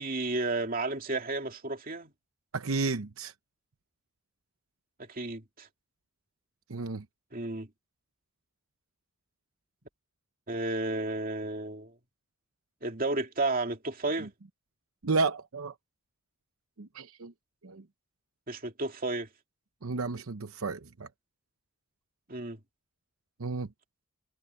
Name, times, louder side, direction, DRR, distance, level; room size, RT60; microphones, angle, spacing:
voice 1, 0.0-2.1 5.0-5.7 7.3-7.7 10.5-11.9 12.8-14.3 18.5-19.3 22.3-22.6, right 2 dB, 45° right, 2.7 m, -32 dB
voice 2, 2.5-3.3 6.7-7.0 14.2-14.3 15.0-15.7 16.8-17.3 17.6-17.8 19.8-21.1 23.4-23.7, right 3 dB, 90° right, 0.9 m, -32 dB
head